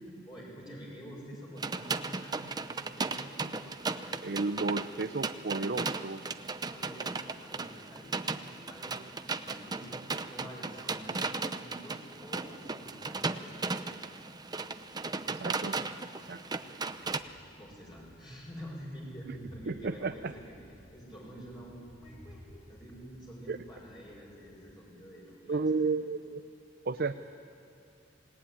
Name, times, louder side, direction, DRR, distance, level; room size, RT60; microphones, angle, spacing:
voice 1, 0.3-4.2 6.6-14.2 17.5-20.5 20.9-22.4 22.7-25.9, equal, 25° left, -4 dB, 6.7 m, -48 dB
sound 1, 1.6-17.2, right 3 dB, 20° right, 0.8 m, -36 dB
voice 2, 4.2-6.2 15.3-15.8 16.3-16.4 19.7-20.3 23.5-23.6 25.5-26.4 26.9-27.1, right 3 dB, 60° right, 8 dB, 0.7 m, -32 dB
Train, 16.9-24.7, equal, 55° left, 6.6 m, -56 dB
26.5 x 18.5 x 9.9 m, 2.5 s
head